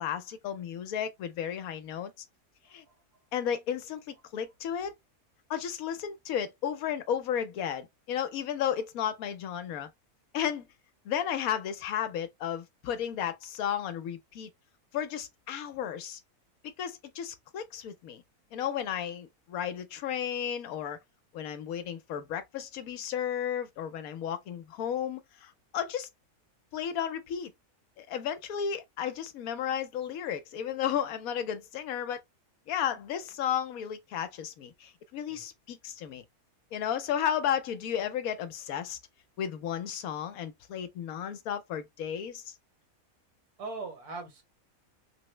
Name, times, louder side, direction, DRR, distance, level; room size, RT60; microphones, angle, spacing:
voice 1, 0.0-2.2 2.7-2.8 3.3-5.0 5.5-9.9 10.3-10.7 11.0-14.5 14.9-16.2 16.6-18.2 18.5-21.0 21.3-26.1 26.7-27.5 28.0-32.2 32.7-36.2 36.7-39.0 39.4-42.5, left 9 dB, 75° left, 1.1 m, -33 dB
voice 2, 2.6-3.0 35.3-35.5 43.6-44.4, right 3 dB, 85° right, 1.8 m, -41 dB
3.4 x 2.0 x 3.0 m
omnidirectional pair, 1.6 m